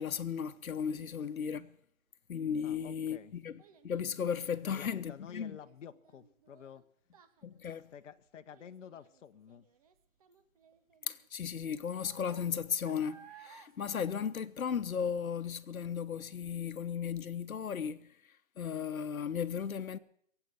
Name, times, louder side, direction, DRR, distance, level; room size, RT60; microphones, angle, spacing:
voice 1, 0.0-1.7 2.3-5.6 7.4-7.9 11.1-18.1 18.6-20.0, left 7 dB, 85° left, 1.0 m, -35 dB
Child speech kid speaking, 2.4-15.1 15.4-15.8 16.3-16.4, right 8 dB, 25° right, 0.8 m, -61 dB
voice 2, 2.6-3.3 4.6-6.8 7.9-9.7, left 8 dB, 60° left, 0.9 m, -50 dB
22.5 x 8.1 x 7.8 m
hypercardioid pair, 155°, 41 cm